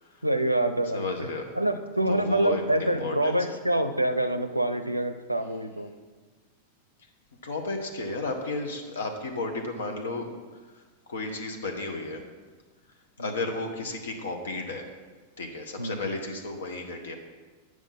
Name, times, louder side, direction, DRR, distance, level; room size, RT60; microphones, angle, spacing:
voice 1, 0.2-1.3 1.5-5.9 13.2-13.3 15.8-16.0, right 1 dB, 90° right, 9 dB, 0.5 m, -26 dB
voice 2, 0.9-1.5 2.1-3.6 7.4-10.3 10.7-10.8 11.1-12.2 13.2-14.9 15.4-17.2, left 2 dB, 65° left, 3 dB, 1.0 m, -33 dB
8.5 x 6.2 x 5.5 m, 1.4 s
figure-of-eight pair, 90°, 0 cm